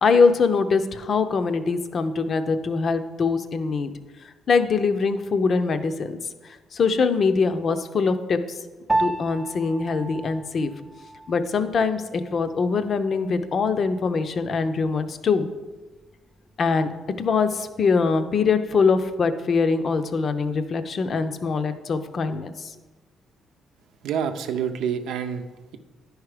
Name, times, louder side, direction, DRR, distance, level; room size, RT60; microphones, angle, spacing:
voice 1, 0.0-3.9 4.5-6.2 6.7-8.4 9.0-10.7 11.3-15.5 16.6-16.9 17.2-22.7, left 4 dB, 50° left, 9 dB, 0.6 m, -23 dB
Piano, 8.9-18.5, right 2 dB, 15° right, 0.4 m, -34 dB
voice 2, 24.0-25.8, right 7 dB, 85° right, 8 dB, 0.6 m, -28 dB
10.5 x 4.8 x 4.9 m, 1.2 s
cardioid pair, 90°, 0 cm